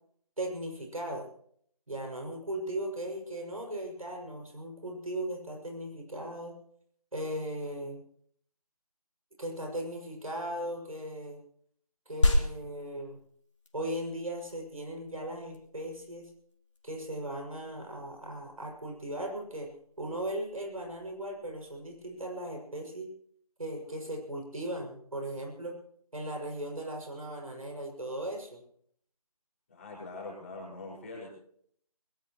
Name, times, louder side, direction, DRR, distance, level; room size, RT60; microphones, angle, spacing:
voice 1, 0.4-1.3 1.9-6.6 7.1-8.0 9.4-11.4 12.1-13.2 13.7-16.3 16.8-19.7 20.0-23.1 23.6-25.7 26.1-28.6, right 1 dB, 65° right, 1 dB, 6.2 m, -37 dB
sound 1, 12.2-22.2, left 1 dB, 50° left, 2.9 m, -35 dB
voice 2, 29.7-31.3, left 2 dB, 20° left, -4 dB, 5.3 m, -43 dB
21.5 x 19.0 x 3.1 m, 0.63 s
figure-of-eight pair, 165°, 19 cm